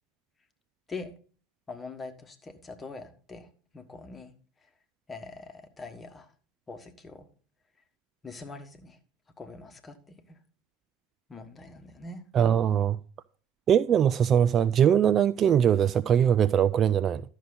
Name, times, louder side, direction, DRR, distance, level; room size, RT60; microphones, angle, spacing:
voice 1, 1.7-3.5 3.7-4.3 5.1-6.3 6.7-7.3 8.2-9.0 9.4-10.2 11.3-12.2, left 3 dB, 20° left, 1.5 m, -43 dB
voice 2, 12.3-13.0 13.7-17.2, right 9 dB, 35° right, 0.4 m, -22 dB
12.0 x 6.5 x 4.0 m
figure-of-eight pair, 80°, 0 cm